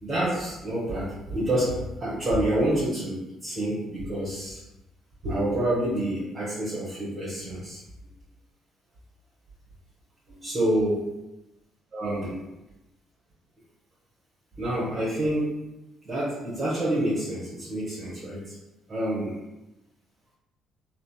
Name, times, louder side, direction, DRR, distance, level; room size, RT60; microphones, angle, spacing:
voice 1, 0.0-4.6 5.2-7.8 10.4-11.1 11.9-12.4 14.6-15.5 16.0-18.4 18.9-19.3, right 1 dB, 40° right, -9 dB, 0.9 m, -27 dB
2.7 x 2.0 x 2.3 m, 0.96 s
hypercardioid pair, 50°, 0 cm